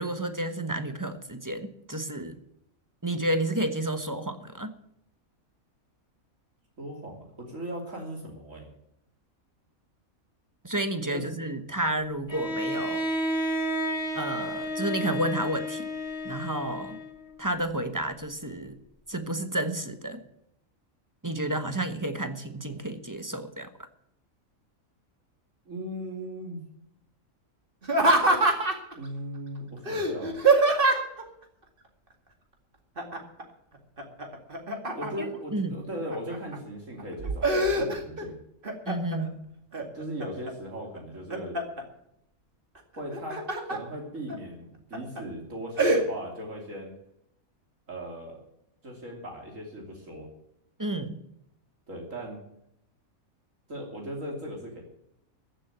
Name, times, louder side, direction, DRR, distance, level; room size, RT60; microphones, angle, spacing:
voice 1, 0.0-2.4 3.0-4.7 10.6-13.1 14.1-15.9 16.2-17.0 17.4-18.8 19.1-20.2 21.2-23.7 35.2-35.7 38.9-39.5 50.8-51.2, right 1 dB, 15° right, 9 dB, 1.1 m, -31 dB
voice 2, 6.8-8.7 11.1-11.2 25.6-26.6 28.9-30.4 34.9-38.3 39.9-41.6 42.9-46.9 47.9-48.4 48.8-50.3 51.9-52.4 53.7-54.8, equal, 65° right, 0 dB, 3.3 m, -38 dB
Bowed string instrument, 12.3-17.3, equal, 20° left, 2.9 m, -31 dB
Laughter, 27.8-28.9 29.9-31.2 33.0-33.4 33.7-35.3 35.9-36.6 37.0-38.2 38.6-39.2 39.7-40.5 41.0-41.8 43.0-43.8 44.3-44.4 44.9-45.2 45.8-46.0, right 2 dB, 40° right, 2.3 m, -24 dB
15.0 x 7.5 x 9.1 m, 0.78 s
omnidirectional pair, 1.5 m